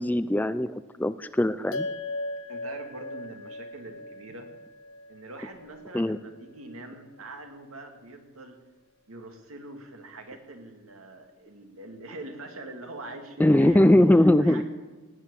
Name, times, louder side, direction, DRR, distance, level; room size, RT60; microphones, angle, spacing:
voice 1, 0.0-1.9 5.9-6.2 13.4-14.6, left 1 dB, 10° left, 13 dB, 0.4 m, -21 dB
sound 1, 1.7-6.4, left 2 dB, 80° left, 1.0 m, -38 dB
voice 2, 2.5-4.5 5.1-8.6 9.1-14.1 14.4-14.6, right 2 dB, 85° right, 5 dB, 2.3 m, -43 dB
18.5 x 7.8 x 8.3 m, 1.3 s
head